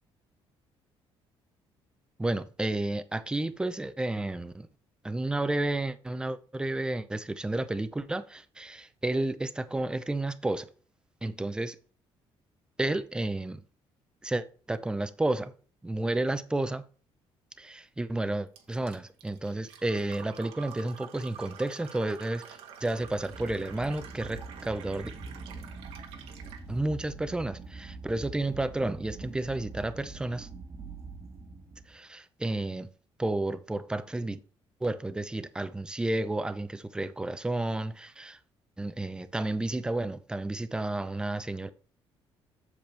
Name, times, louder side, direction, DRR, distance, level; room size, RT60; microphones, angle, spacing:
voice 1, 2.2-4.7 5.0-10.7 11.2-11.8 12.8-13.6 14.2-15.5 15.8-16.8 17.6-25.1 26.7-30.5 31.9-32.9 33.2-34.4 34.8-38.4 38.8-41.7, right 2 dB, 10° right, 0.6 m, -31 dB
Fill (with liquid), 18.6-26.7, right 8 dB, 85° right, 1.6 m, -48 dB
sound 1, 22.9-32.0, right 3 dB, 25° right, 1.4 m, -44 dB
7.8 x 7.1 x 3.4 m
cardioid pair, 135°, 10 cm